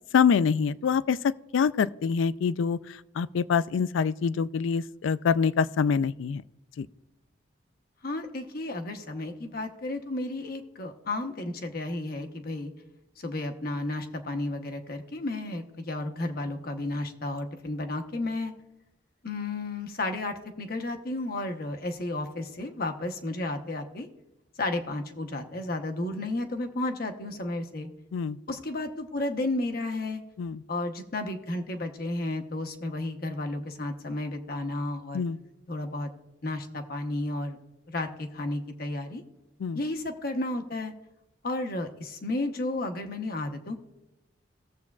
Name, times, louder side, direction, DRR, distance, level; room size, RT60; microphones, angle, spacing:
voice 1, 0.1-2.8 3.2-6.4 6.8-6.9 28.1-28.4 30.4-30.6 35.1-35.4 39.6-39.8, left 6 dB, 70° left, 0.3 m, -25 dB
voice 2, 8.0-12.7 13.2-18.5 19.2-24.1 24.6-27.9 28.5-30.2 30.7-35.3 35.7-36.1 36.4-37.6 37.9-39.2 39.7-40.9 41.4-43.8, left 2 dB, 50° left, 0.9 m, -32 dB
17.5 x 7.4 x 2.4 m
head